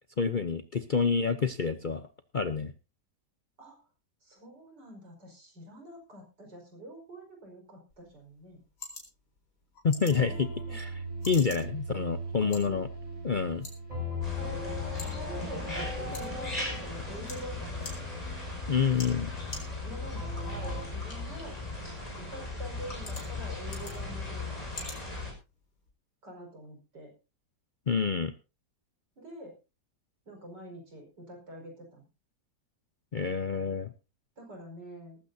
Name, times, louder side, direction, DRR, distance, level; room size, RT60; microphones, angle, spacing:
voice 1, 0.2-2.0 2.3-2.7 9.8-11.0 11.3-12.9 13.2-13.7 18.7-19.3 27.9-28.3 33.1-33.9, left 5 dB, 45° left, 10 dB, 0.6 m, -28 dB
voice 2, 4.2-8.6 10.7-10.8 12.6-12.8 14.4-18.1 19.8-21.6 22.1-24.6 26.2-27.1 29.2-29.5 30.3-32.1 34.4-35.2, right 1 dB, 85° right, 2 dB, 5.8 m, -46 dB
sound 1, 7.9-25.9, left 3 dB, 70° left, 4.5 m, -50 dB
sound 2, 10.1-20.8, left 1 dB, 25° right, 7.7 m, -39 dB
sound 3, 14.2-25.3, left 2 dB, 20° left, 5.8 m, -38 dB
18.5 x 15.0 x 2.7 m, 0.30 s
omnidirectional pair, 1.8 m